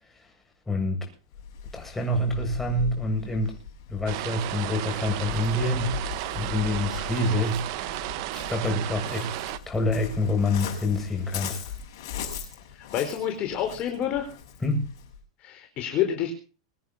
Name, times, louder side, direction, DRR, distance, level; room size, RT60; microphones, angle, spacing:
voice 1, 0.7-1.1 1.7-3.6 3.9-6.0 6.4-9.3 9.7-11.6 14.6-14.8, left 1 dB, 10° left, 7.7 m, -27 dB
Waves surf, 1.3-15.2, left 7 dB, 60° left, 6.9 m, -39 dB
sound 1, 4.1-9.6, right 16 dB, 55° right, 1.3 m, -33 dB
voice 2, 12.9-14.3 15.4-16.3, left 10 dB, 40° left, 4.2 m, -28 dB
23.5 x 9.5 x 5.6 m
hypercardioid pair, 125°, 3 cm